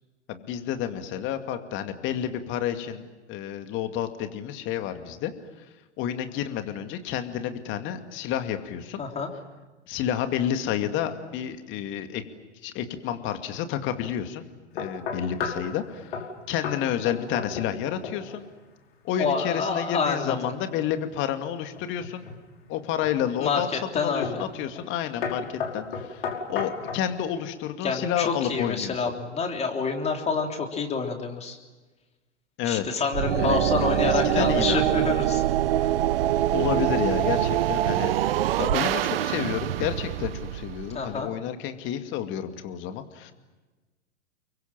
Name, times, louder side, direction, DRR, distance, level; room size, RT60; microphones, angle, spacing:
voice 1, 0.3-3.0 3.3-5.3 6.0-9.0 9.9-12.2 12.6-14.4 14.7-16.2 16.5-18.4 19.0-22.2 22.7-23.7 23.9-28.9 32.6-32.8 33.4-33.6 34.0-34.9 36.5-38.2 38.6-43.3, left 10 dB, 35° left, 7 dB, 2.4 m, -30 dB
voice 2, 9.0-9.3 19.2-20.5 23.4-24.4 27.8-31.6 32.6-35.4 40.9-41.3, left 4 dB, 20° left, 3 dB, 3.5 m, -27 dB
sound 1, 14.8-15.7 16.1-16.3 16.6-16.8 17.1-17.8 18.0-18.4 21.8-22.4 23.0-23.4 24.2-24.5 24.7-24.9 25.2-27.1, left 6 dB, 55° left, 5.5 m, -32 dB
sound 2, 33.1-41.2, right 12 dB, 55° right, 0.8 m, -25 dB
30.0 x 23.5 x 7.5 m, 1.2 s
figure-of-eight pair, 100°, 36 cm